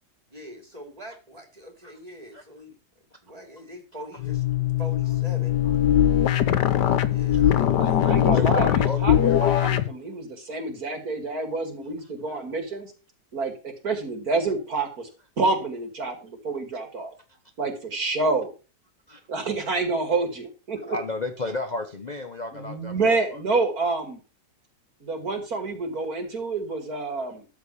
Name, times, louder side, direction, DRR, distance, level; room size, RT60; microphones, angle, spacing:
voice 1, 0.3-2.8 3.2-4.4 4.8-5.6 6.3-6.7 7.1-8.7 9.0-9.2, equal, 20° right, 3 dB, 3.0 m, -43 dB
sound 1, 4.2-9.9, left 11 dB, 75° left, 1.5 m, -21 dB
voice 2, 7.8-12.9 13.3-15.1 15.4-17.1 17.6-18.5 19.3-21.0 22.5-24.2 25.0-27.5, right 3 dB, 55° right, 5 dB, 2.9 m, -28 dB
voice 3, 8.3-9.5 19.1-19.2 20.9-23.2, left 2 dB, 30° left, 5 dB, 1.0 m, -32 dB
13.5 x 4.5 x 8.5 m, 0.34 s
omnidirectional pair, 1.9 m